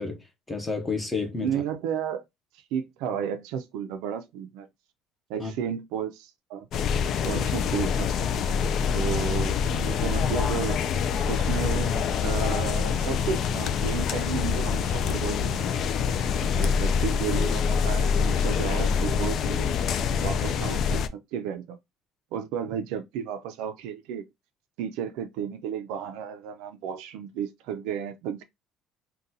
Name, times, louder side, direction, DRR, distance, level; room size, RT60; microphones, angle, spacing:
voice 1, 0.0-1.5 5.4-5.5 7.3-7.5 16.4-16.8, left 4 dB, 10° left, 0.6 m, -31 dB
voice 2, 1.4-2.2 2.7-4.7 5.3-6.7 7.2-8.1 8.9-10.8 11.3-11.9 12.2-15.7 16.6-19.7 20.2-21.8 22.3-24.3 24.8-28.4, right 8 dB, 90° right, 0.4 m, -33 dB
sound 1, 6.7-21.1, left 6 dB, 45° left, 0.3 m, -25 dB
3.8 x 2.2 x 2.6 m
cardioid pair, 160°, 0 cm